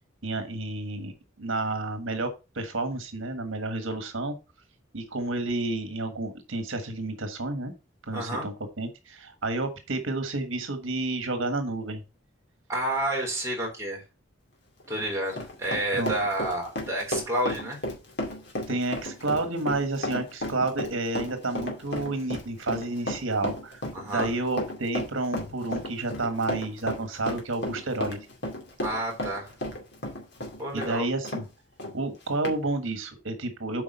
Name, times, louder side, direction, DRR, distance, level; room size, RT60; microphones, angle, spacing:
voice 1, 0.2-1.1 1.4-4.3 4.9-7.7 8.0-12.0 16.0-16.1 18.7-28.2 30.7-31.4 31.9-33.8, right 2 dB, 80° right, 8 dB, 1.4 m, -30 dB
voice 2, 8.1-8.5 12.7-14.0 14.9-17.8 23.9-24.3 28.8-29.5 30.6-31.1, right 1 dB, 15° right, -2 dB, 3.8 m, -30 dB
Run, 14.8-31.5 31.8-31.9 32.4-32.6, left 1 dB, 55° left, 2.4 m, -33 dB
8.5 x 4.8 x 5.4 m, 0.29 s
head